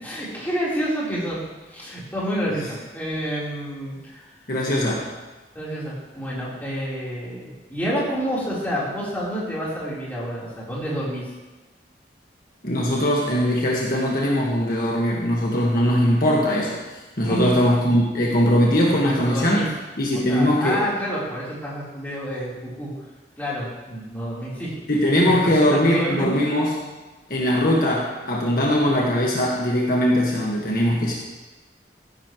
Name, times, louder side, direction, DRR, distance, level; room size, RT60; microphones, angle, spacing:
voice 1, 0.0-1.4 1.7-4.3 5.5-11.3 17.3-17.6 19.0-19.7 20.1-22.9 23.4-24.7 25.2-26.4, equal, 10° left, -8 dB, 3.9 m, -29 dB
voice 2, 4.5-5.1 12.6-16.8 17.2-19.6 20.0-20.8 24.9-26.8 27.3-31.2, equal, 55° left, -3 dB, 1.6 m, -20 dB
15.5 x 11.0 x 3.1 m, 1.2 s
head